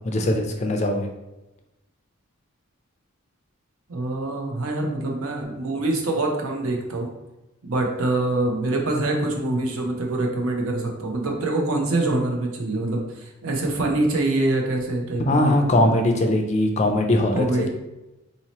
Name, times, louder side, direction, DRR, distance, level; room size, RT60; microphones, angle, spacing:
voice 1, 0.0-1.1 15.2-17.7, left 1 dB, 30° left, 3 dB, 0.4 m, -21 dB
voice 2, 3.9-7.1 7.6-15.7 17.3-17.7, right 2 dB, 75° right, 1 dB, 0.7 m, -25 dB
4.0 x 2.8 x 2.9 m, 0.98 s
head